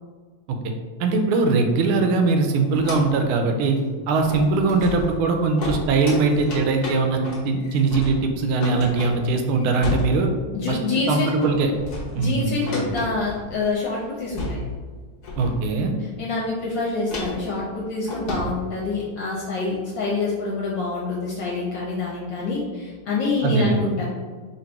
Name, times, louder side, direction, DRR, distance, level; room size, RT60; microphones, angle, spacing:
voice 1, 1.0-3.8 4.1-10.3 10.7-10.8 11.1-11.7 12.1-12.9 15.4-15.9 23.4-23.8, right 3 dB, 85° right, 4 dB, 1.4 m, -21 dB
sound 1, 2.6-3.3 3.7-3.8 4.1-10.5 10.8-11.1 11.4-13.6 14.0-14.1 14.3-14.9 15.2-15.9 17.1-18.6, left 1 dB, 50° left, 1.1 m, -32 dB
voice 2, 10.5-11.3 12.1-14.6 16.0-24.0, left 3 dB, 70° left, -4 dB, 1.4 m, -26 dB
3.9 x 2.6 x 4.4 m, 1.5 s
omnidirectional pair, 2.3 m